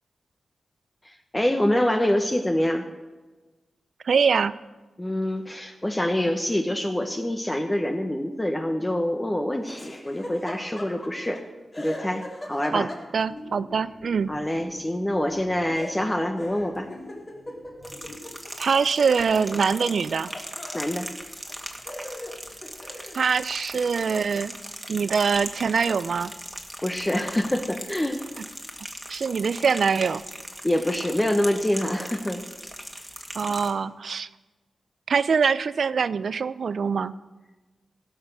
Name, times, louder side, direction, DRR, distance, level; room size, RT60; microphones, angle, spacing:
voice 1, 1.0-2.9 5.0-11.4 11.8-12.9 14.3-16.9 20.7-21.1 26.8-28.2 30.6-32.4, left 1 dB, 20° left, 3 dB, 1.2 m, -26 dB
voice 2, 4.0-4.5 12.7-14.3 18.6-20.3 23.1-24.5 24.9-26.3 29.1-30.2 33.4-34.3 35.1-37.1, right 5 dB, 70° right, 16 dB, 0.5 m, -23 dB
Laughter, 9.6-11.4 11.7-13.4 15.7-18.9 19.2-20.9 21.5-21.6 21.9-23.2, left 1 dB, 35° left, 3.1 m, -40 dB
sound 1, 13.3-18.3, left 1 dB, 85° left, 3.1 m, -46 dB
sound 2, 17.8-33.7, equal, 5° right, 2.0 m, -39 dB
16.5 x 5.9 x 6.6 m, 1.2 s
cardioid pair, 45°, 0 cm